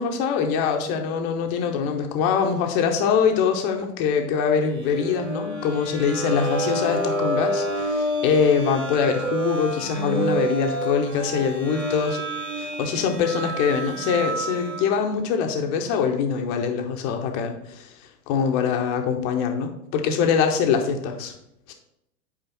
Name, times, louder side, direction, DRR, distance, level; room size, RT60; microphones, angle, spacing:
voice 1, 0.0-12.2 12.6-17.9 18.3-21.3 21.7-21.8, left 6 dB, 15° left, 4 dB, 0.4 m, -23 dB
sound 1, 4.7-15.0, right 1 dB, 65° right, 2.5 m, -29 dB
8.2 x 5.0 x 4.2 m, 0.81 s
figure-of-eight pair, 100°, 45 cm